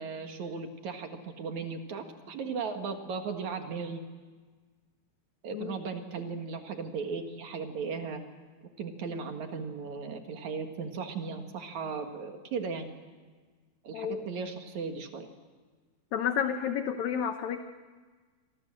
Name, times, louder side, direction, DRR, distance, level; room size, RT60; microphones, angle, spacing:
voice 1, 0.0-4.0 5.4-8.2 8.8-12.9 13.8-15.3, right 5 dB, 60° right, 5 dB, 2.9 m, -36 dB
voice 2, 16.1-17.6, left 8 dB, 65° left, 7 dB, 2.0 m, -30 dB
26.5 x 24.5 x 7.6 m, 1.4 s
omnidirectional pair, 4.0 m